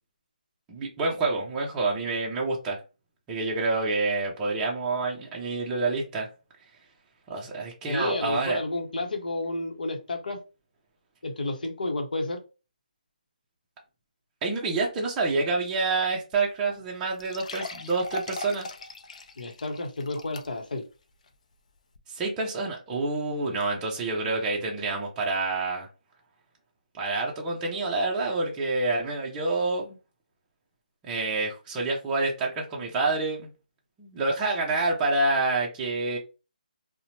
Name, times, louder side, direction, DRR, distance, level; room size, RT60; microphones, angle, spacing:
voice 1, 0.7-2.8 3.3-6.3 7.3-8.6 14.4-18.7 22.1-25.9 26.9-30.0 31.0-33.5 34.0-36.2, right 3 dB, 15° right, 0.5 m, -27 dB
voice 2, 7.9-10.4 11.2-12.4 19.4-20.8, left 2 dB, 75° left, 0.8 m, -31 dB
sound 1, 16.3-16.4 16.7-16.8 17.2-20.8 21.3-21.4 21.9-22.0, left 3 dB, 50° left, 0.5 m, -39 dB
2.8 x 2.1 x 2.8 m
hypercardioid pair, 160°, 5 cm